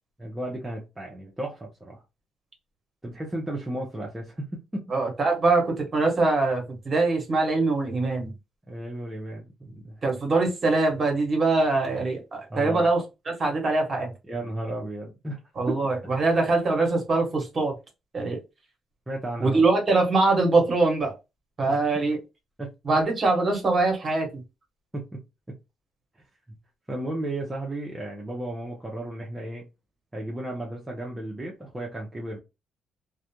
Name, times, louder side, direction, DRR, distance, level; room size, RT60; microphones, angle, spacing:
voice 1, 0.2-2.0 3.0-4.9 8.7-10.2 12.5-12.9 14.3-15.4 15.7-15.8 19.1-19.6 21.7-21.8 22.6-22.7 24.9-25.2 25.5-25.6 26.9-29.6 30.1-32.4, right 1 dB, 15° right, 0.7 m, -34 dB
voice 2, 4.9-8.3 10.0-14.1 15.6-17.7 18.1-18.4 19.4-21.1 21.6-22.2 22.8-24.3, right 3 dB, 40° right, 1.2 m, -23 dB
2.3 x 2.2 x 2.9 m
cardioid pair, 90°, 0 cm